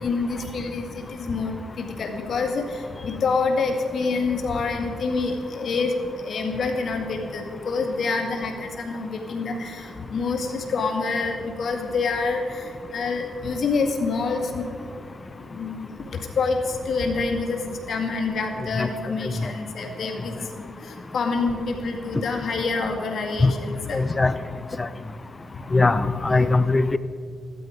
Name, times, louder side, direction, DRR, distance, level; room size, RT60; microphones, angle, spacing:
voice 1, 0.0-2.6 3.0-5.9 6.2-14.7 15.5-15.9 16.4-16.6 16.9-17.6 17.9-20.3 21.1-24.0 25.9-26.6, left 4 dB, 60° left, 2 dB, 2.1 m, -27 dB
voice 2, 23.9-24.3 24.8-24.9 25.7-27.0, left 3 dB, 25° left, 14 dB, 0.5 m, -20 dB
15.0 x 12.5 x 5.1 m, 2.4 s
cardioid pair, 85°, 0 cm